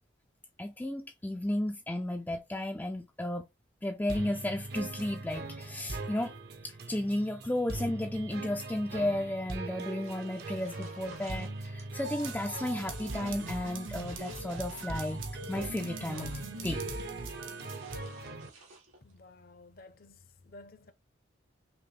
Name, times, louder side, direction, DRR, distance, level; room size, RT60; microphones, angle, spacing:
voice 1, 0.6-3.4 3.8-6.3 6.6-17.0, left 1 dB, 10° left, 0.3 m, -34 dB
sound 1, 4.1-18.5, right 2 dB, 50° right, 0.7 m, -41 dB
sound 2, 10.0-11.9 12.2-13.4 14.0-15.3 15.6-16.7 17.6-19.2, right 4 dB, 90° right, 1.7 m, -56 dB
sound 3, 12.0-18.0, right 2 dB, 75° right, 1.0 m, -41 dB
voice 2, 19.0-20.9, left 2 dB, 45° left, 0.6 m, -53 dB
5.7 x 2.1 x 3.3 m
head